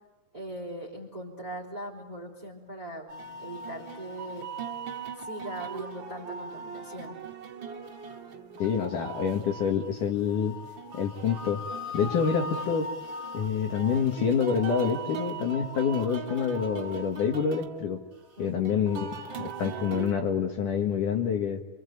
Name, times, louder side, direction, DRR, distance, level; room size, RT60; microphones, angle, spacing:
voice 1, 0.3-3.1 3.4-4.5 5.2-7.2 18.4-18.7, right 1 dB, 10° right, -1 dB, 3.7 m, -40 dB
sound 1, 3.1-20.1, right 3 dB, 40° right, 1.9 m, -39 dB
voice 2, 8.6-10.5 10.9-11.6 11.9-12.9 13.3-18.0 18.4-21.6, left 7 dB, 60° left, 2 dB, 3.1 m, -27 dB
27.5 x 25.5 x 8.3 m, 1.1 s
omnidirectional pair, 4.4 m